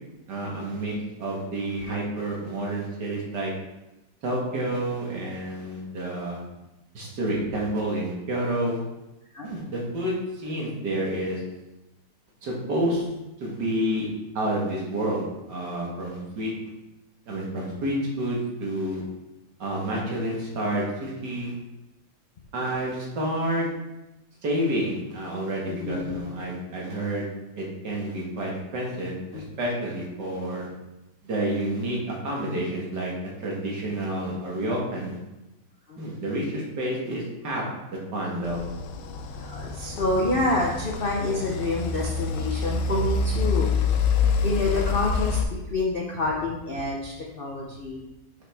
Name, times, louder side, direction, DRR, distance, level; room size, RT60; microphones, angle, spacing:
voice 1, 0.3-3.5 4.2-6.4 6.9-8.8 9.4-11.4 12.4-13.1 13.4-14.1 14.4-16.5 17.3-19.0 19.6-21.5 22.5-23.7 24.4-27.3 27.6-30.7 31.2-33.1 33.4-35.2 36.0-37.6 37.9-38.6, right 1 dB, 70° right, -3 dB, 2.2 m, -29 dB
voice 2, 25.7-26.2 29.3-29.4 35.9-36.0 39.4-43.7 44.4-48.0, left 2 dB, 55° left, -2 dB, 0.6 m, -28 dB
sound 1, 38.4-45.4, left 4 dB, 80° left, 1.3 m, -27 dB
7.0 x 5.9 x 3.4 m, 0.98 s
omnidirectional pair, 1.9 m